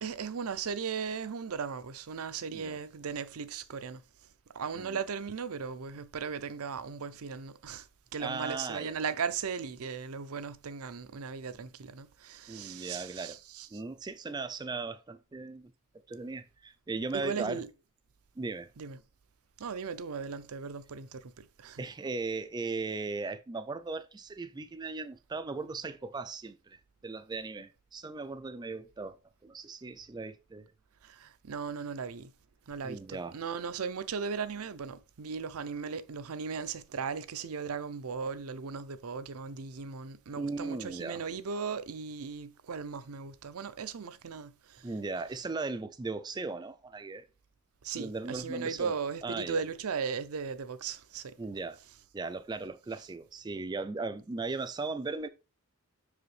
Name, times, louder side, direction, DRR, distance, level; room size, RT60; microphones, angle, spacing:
voice 1, 0.0-4.0 4.5-7.9 8.1-13.8 17.1-17.7 18.8-19.0 19.6-21.8 31.0-32.3 32.7-44.9 47.8-51.4, right 6 dB, 75° right, 0.5 m, -37 dB
voice 2, 8.2-8.9 12.5-13.4 13.7-15.7 16.1-17.6 18.4-18.7 21.8-29.2 29.4-30.7 32.8-33.4 40.3-41.2 44.8-47.3 47.9-48.9 49.2-49.6 51.4-51.8 52.1-55.3, right 3 dB, 20° right, 0.3 m, -37 dB
6.1 x 4.9 x 3.2 m
head